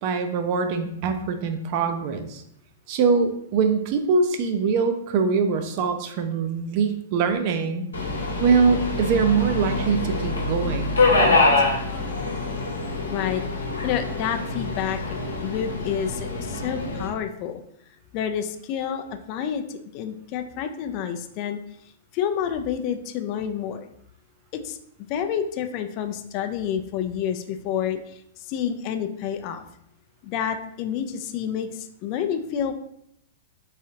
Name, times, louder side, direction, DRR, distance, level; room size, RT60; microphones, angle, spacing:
voice 1, 0.0-2.4 2.9-7.8 8.4-11.4, right 5 dB, 45° right, 7 dB, 0.5 m, -23 dB
Subway metro underground, 7.9-17.1, left 3 dB, 75° left, 0.9 m, -25 dB
voice 2, 11.2-11.6 13.1-13.4 13.8-15.2 15.4-17.6 18.1-21.6 22.1-23.9 24.5-24.8 25.1-28.2 28.5-29.6 30.2-32.7, left 8 dB, 40° left, 7 dB, 0.4 m, -29 dB
3.6 x 3.2 x 2.8 m, 0.73 s
figure-of-eight pair, 100°, 0 cm